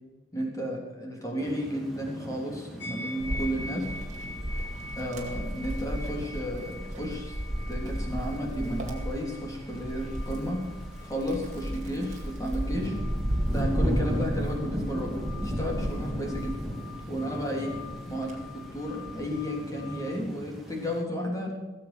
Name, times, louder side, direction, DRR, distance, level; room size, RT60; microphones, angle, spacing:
voice 1, 0.3-3.9 5.0-7.4 7.7-10.6 11.0-13.0 13.5-16.6 17.1-17.7 18.1-21.5, equal, 15° left, 0 dB, 3.6 m, -33 dB
sound 1, 1.4-21.0, equal, ahead, 2.3 m, -38 dB
sound 2, 2.8-20.2, left 3 dB, 55° left, 2.0 m, -46 dB
Wind, 3.2-17.3 17.7-19.2, equal, 35° right, 2.4 m, -34 dB
18.5 x 7.7 x 7.0 m, 1.3 s
head